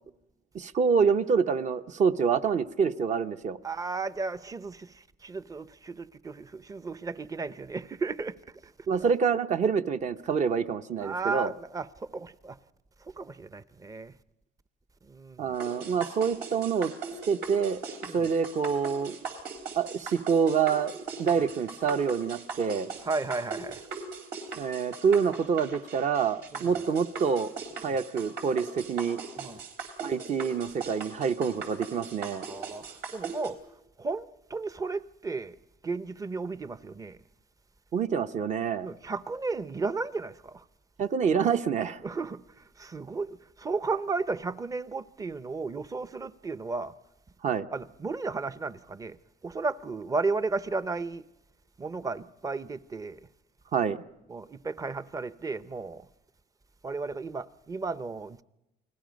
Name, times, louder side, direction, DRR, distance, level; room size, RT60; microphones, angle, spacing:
voice 1, 0.5-3.6 8.9-11.5 15.4-16.9 17.3-17.8 18.1-19.2 19.8-22.9 24.6-27.5 27.8-29.2 30.0-32.4 37.9-38.9 41.0-42.0 47.4-47.7 53.7-54.0, right 6 dB, 45° right, 0.9 m, -27 dB
voice 2, 3.6-8.4 8.6-8.7 11.0-12.6 13.0-14.2 15.1-15.6 18.0-18.3 23.1-23.8 26.5-26.7 27.9-28.0 29.4-29.6 32.5-33.6 34.0-35.6 35.8-37.2 38.8-40.6 42.0-46.9 47.7-49.2 49.4-51.2 51.8-53.2 54.3-56.1 56.8-58.4, right 4 dB, 20° right, 0.7 m, -34 dB
sound 1, 15.6-33.5, right 5 dB, 75° right, 4.1 m, -39 dB
29.0 x 20.0 x 5.2 m
cardioid pair, 110°, 17 cm